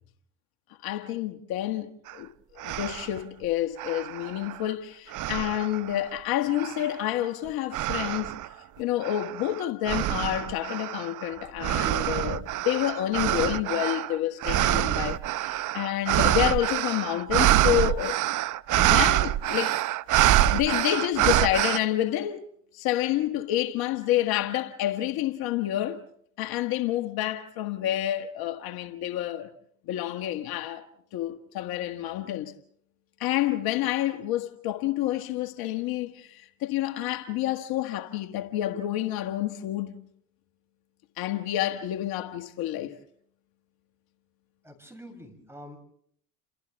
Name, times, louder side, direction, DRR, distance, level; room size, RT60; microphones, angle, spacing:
voice 1, 0.8-18.2 18.7-19.8 20.4-22.4 22.7-26.0 26.4-29.5 29.9-30.8 31.1-32.5 33.2-39.9 41.2-43.0, left 13 dB, 60° left, 1.6 m, -29 dB
sound 1, 2.1-2.2 2.6-3.2 3.8-4.7 5.1-6.0 6.6-7.1 7.7-8.5 9.0-21.8, right 14 dB, 45° right, 0.8 m, -26 dB
voice 2, 44.6-45.8, equal, 5° right, 7.4 m, -46 dB
30.0 x 27.5 x 3.5 m
supercardioid pair, 85°, 42 cm